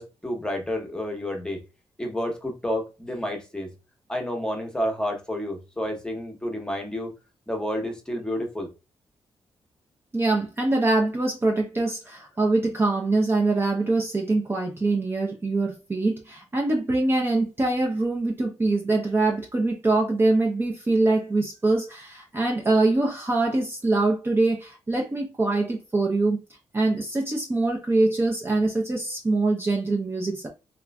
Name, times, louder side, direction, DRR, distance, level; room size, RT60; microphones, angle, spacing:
voice 1, 0.0-1.6 2.0-3.7 4.1-7.1 7.5-8.7, left 1 dB, 10° left, 0.8 m, -30 dB
voice 2, 10.1-26.4 26.7-30.5, right 2 dB, 25° right, 0.5 m, -24 dB
3.0 x 2.4 x 2.2 m
cardioid pair, 85°, 10 cm